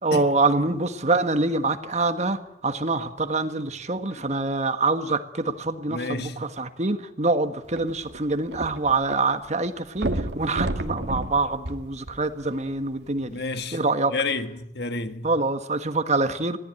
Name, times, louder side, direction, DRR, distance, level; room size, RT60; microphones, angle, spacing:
voice 1, 0.0-13.4 13.7-14.1 15.2-16.6, right 3 dB, 40° right, 1.5 m, -25 dB
voice 2, 5.9-6.4 13.3-13.8 14.1-15.3, left 3 dB, 65° left, 1.6 m, -30 dB
sound 1, 7.7-9.2 9.5-9.6 10.0-12.5 13.2-13.3, right 1 dB, 70° right, 1.8 m, -30 dB
25.5 x 18.0 x 9.0 m
head